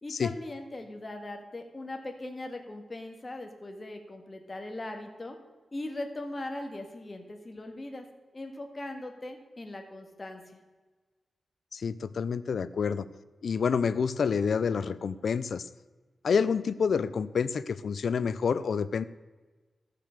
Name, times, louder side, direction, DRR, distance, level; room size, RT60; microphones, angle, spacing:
voice 1, 0.0-5.4 5.7-8.1 8.3-10.6, left 2 dB, 30° left, 4 dB, 1.9 m, -40 dB
voice 2, 11.7-13.0 13.4-15.7 16.2-19.0, left 6 dB, 70° left, 15 dB, 0.5 m, -28 dB
14.0 x 6.6 x 6.6 m, 1.3 s
wide cardioid pair, 95°, 0 cm